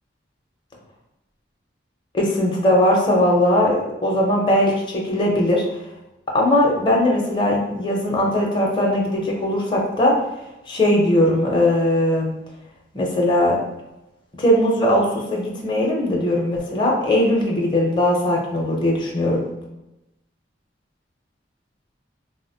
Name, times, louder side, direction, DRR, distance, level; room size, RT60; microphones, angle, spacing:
voice 1, 2.1-5.6 6.3-10.2 10.7-12.3 12.9-13.6 14.4-19.5, left 1 dB, 25° left, -2 dB, 0.6 m, -19 dB
3.6 x 2.0 x 2.6 m, 0.91 s
head